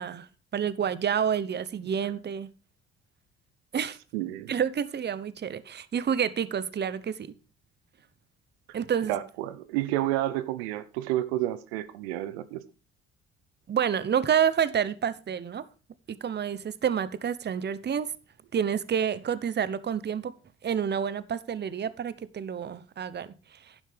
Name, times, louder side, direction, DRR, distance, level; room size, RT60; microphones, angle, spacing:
voice 1, 0.0-2.5 3.7-4.0 4.5-7.3 8.7-9.2 13.7-15.7 16.1-18.1 18.5-20.3 20.6-23.7, right 8 dB, 35° right, 0.9 m, -29 dB
voice 2, 4.1-4.5 9.1-12.6, right 14 dB, 75° right, 0.8 m, -30 dB
11.5 x 10.0 x 3.4 m
hypercardioid pair, 55°, 31 cm